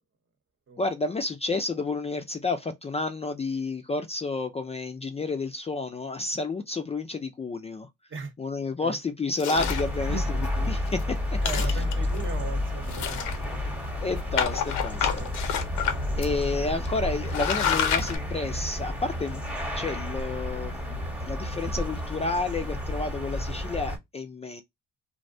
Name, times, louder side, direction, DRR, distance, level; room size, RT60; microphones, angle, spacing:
voice 1, 0.8-7.9 8.4-10.2 10.6-11.4 11.6-11.8 14.0-15.2 16.2-19.4 19.8-24.6, left 3 dB, 20° left, 0.4 m, -30 dB
sound 1, 9.4-9.9 10.5-10.6 10.9-11.0 11.3-12.2 12.9-13.7 14.4-15.9 16.2-16.3 16.8-17.0 17.2-18.2, left 8 dB, 90° left, 0.6 m, -28 dB
sound 2, 9.6-24.0, left 1 dB, 5° right, 0.9 m, -31 dB
voice 2, 10.0-10.4 11.4-14.0 14.9-15.7, right 4 dB, 40° right, 0.9 m, -39 dB
2.5 x 2.1 x 2.5 m
cardioid pair, 90°, 30 cm